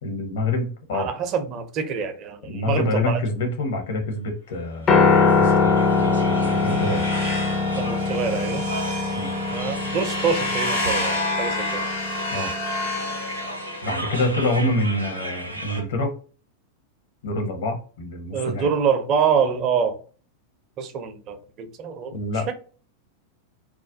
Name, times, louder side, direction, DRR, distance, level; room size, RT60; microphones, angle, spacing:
voice 1, 0.0-1.1 2.5-4.9 5.3-7.1 9.1-9.3 12.3-12.5 13.8-16.1 17.2-18.7 22.1-22.5, left 1 dB, 60° left, 0.7 m, -26 dB
voice 2, 0.9-3.2 7.8-8.6 9.5-11.8 18.3-20.0 20.8-22.5, right 6 dB, 35° right, 0.4 m, -25 dB
sound 1, 4.8-15.8, right 1 dB, 90° right, 0.5 m, -35 dB
Piano, 4.9-13.1, left 4 dB, 25° left, 0.4 m, -23 dB
sound 2, 5.8-14.1, left 1 dB, 80° left, 1.2 m, -30 dB
2.3 x 2.1 x 2.6 m
figure-of-eight pair, 90°, 0 cm